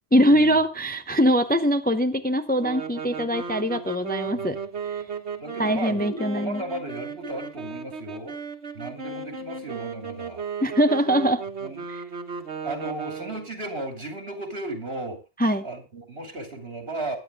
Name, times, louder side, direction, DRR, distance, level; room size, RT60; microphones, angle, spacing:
voice 1, 0.1-4.6 5.6-6.6 10.6-11.4 11.9-12.0 15.4-15.6, equal, 10° left, 8 dB, 0.7 m, -22 dB
sound 1, 2.6-13.6, right 5 dB, 80° right, 1.8 m, -35 dB
voice 2, 5.4-8.4 8.7-10.4 11.6-11.9 12.6-15.2 15.6-17.2, right 2 dB, 65° right, 4 dB, 3.0 m, -35 dB
21.5 x 9.7 x 2.3 m, 0.25 s
omnidirectional pair, 1.1 m